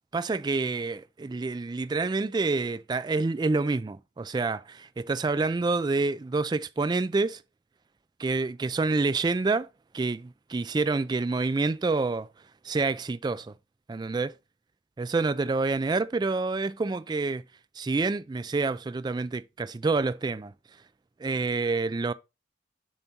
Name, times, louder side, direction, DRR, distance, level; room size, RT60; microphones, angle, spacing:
voice 1, 0.1-7.4 8.2-9.7 9.9-12.3 12.6-13.5 13.9-14.3 15.0-17.4 17.8-20.5 21.2-22.1, right 3 dB, 25° right, 0.3 m, -27 dB
7.1 x 4.0 x 4.4 m
head